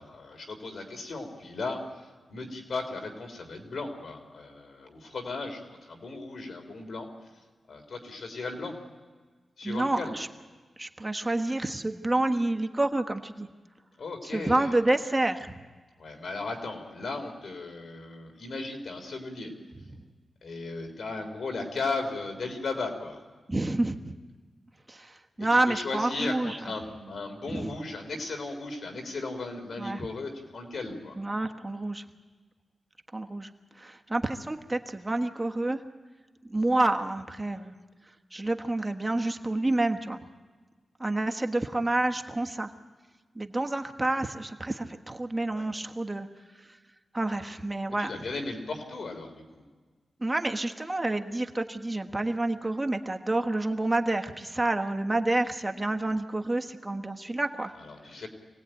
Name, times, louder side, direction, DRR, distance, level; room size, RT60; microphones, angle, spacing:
voice 1, 0.0-7.1 7.3-8.7 9.6-10.1 14.0-14.7 16.0-19.5 20.4-23.2 25.4-31.2 45.5-45.7 48.0-49.6 57.8-58.3, left 3 dB, 70° left, 5 dB, 3.9 m, -36 dB
voice 2, 9.6-10.3 10.8-13.5 14.2-15.6 23.5-24.1 24.9-26.6 27.5-27.7 29.8-30.1 31.2-32.0 33.1-33.5 33.7-35.8 36.4-37.7 38.3-40.2 41.0-42.7 43.3-46.3 46.6-46.8 47.1-48.1 50.2-57.7 58.1-58.2, right 2 dB, 20° right, 5 dB, 1.4 m, -29 dB
25.5 x 18.5 x 9.2 m, 1.4 s
cardioid pair, 80°, 0 cm